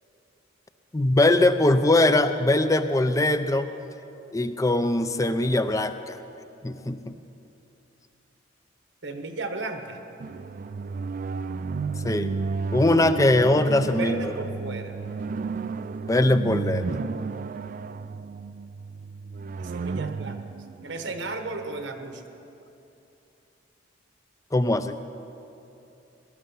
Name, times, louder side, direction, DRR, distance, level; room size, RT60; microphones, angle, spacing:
voice 1, 0.9-3.7 4.3-6.2 6.6-7.1 12.0-12.4 12.7-14.3 16.1-17.0 24.5-25.0, left 2 dB, 15° left, 10 dB, 0.5 m, -21 dB
voice 2, 9.0-10.0 14.0-15.0 19.6-20.4 20.8-22.2, right 3 dB, 75° right, 6 dB, 1.2 m, -34 dB
sound 1, 10.2-21.8, right 4 dB, 45° right, 0.3 m, -33 dB
18.5 x 11.5 x 5.6 m, 2.9 s
head